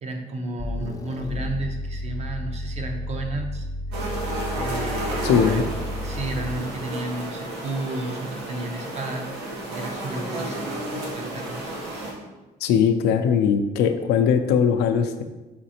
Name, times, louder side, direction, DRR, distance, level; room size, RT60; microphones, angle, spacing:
voice 1, 0.0-3.7 4.5-5.6 6.0-11.8, right 2 dB, 40° right, 4 dB, 0.6 m, -33 dB
sound 1, 0.6-6.8, left 1 dB, 20° left, 0.5 m, -32 dB
sound 2, 3.9-12.1, right 1 dB, 85° right, 1.0 m, -32 dB
voice 2, 5.2-5.6 12.6-15.2, left 7 dB, 85° left, 7 dB, 0.4 m, -20 dB
5.1 x 3.1 x 2.8 m, 1.1 s
cardioid pair, 110°, 17 cm